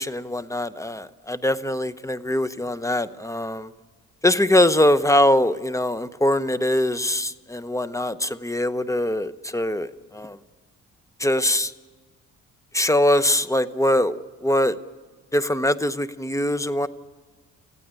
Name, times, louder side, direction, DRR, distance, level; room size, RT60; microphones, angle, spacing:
voice 1, 0.0-3.7 4.2-9.9 10.1-10.4 11.2-11.7 12.7-14.7 15.3-16.9, left 1 dB, 10° left, 14 dB, 0.8 m, -22 dB
29.0 x 15.5 x 9.0 m, 1.4 s
cardioid pair, 90°, 30 cm